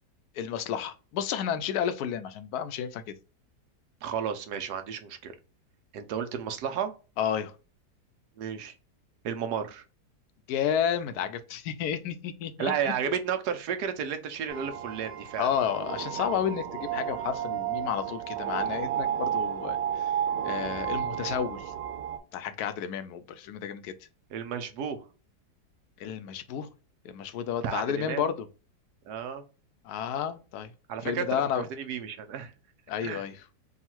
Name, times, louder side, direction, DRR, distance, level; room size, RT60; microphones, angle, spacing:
voice 1, 0.3-3.0 7.2-7.5 10.5-13.1 15.4-20.1 20.4-21.7 22.3-23.9 26.0-26.7 27.0-28.5 29.8-30.7 31.0-31.6 32.9-33.4, left 8 dB, 70° left, 1.0 m, -31 dB
voice 2, 4.0-5.3 5.9-6.9 8.4-8.7 9.2-9.8 12.6-15.5 24.3-25.0 27.6-28.2 29.1-29.4 30.9-32.5 33.0-33.2, right 7 dB, 70° right, 1.2 m, -32 dB
sound 1, 14.5-22.2, right 9 dB, 90° right, 1.5 m, -32 dB
3.6 x 2.4 x 4.3 m
omnidirectional pair, 1.9 m